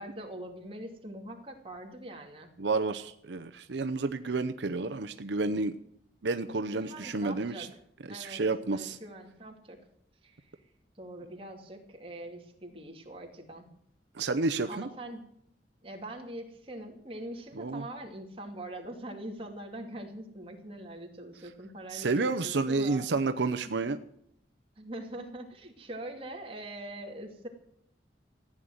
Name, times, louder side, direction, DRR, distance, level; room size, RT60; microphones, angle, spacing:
voice 1, 0.0-2.5 6.7-7.7 8.1-8.4 8.7-9.8 10.2-10.6 11.0-13.7 14.6-15.2 15.8-23.3 24.8-27.5, right 1 dB, 30° right, 1 dB, 2.7 m, -43 dB
voice 2, 2.6-5.7 6.2-7.7 8.1-9.0 14.1-14.9 17.6-17.8 21.9-24.0, right 3 dB, 80° right, 9 dB, 0.7 m, -30 dB
15.0 x 9.8 x 7.8 m, 0.73 s
head